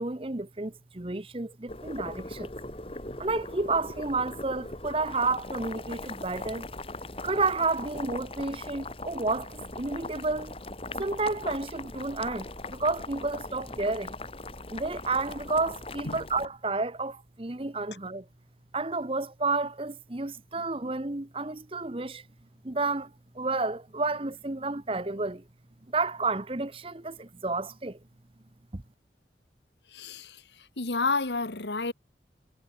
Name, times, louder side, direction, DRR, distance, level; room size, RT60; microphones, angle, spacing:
voice 1, 0.0-2.5 3.2-6.7 7.2-10.6 10.9-14.2 14.7-18.2 18.7-22.2 22.6-23.1 23.3-25.4 25.9-28.0 28.7-28.8, right 3 dB, 30° right, 1.0 m, -31 dB
Boiling, 1.7-16.5, left 2 dB, 35° left, 3.1 m, -40 dB
voice 2, 29.9-31.9, left 3 dB, 80° left, 2.2 m, -31 dB
head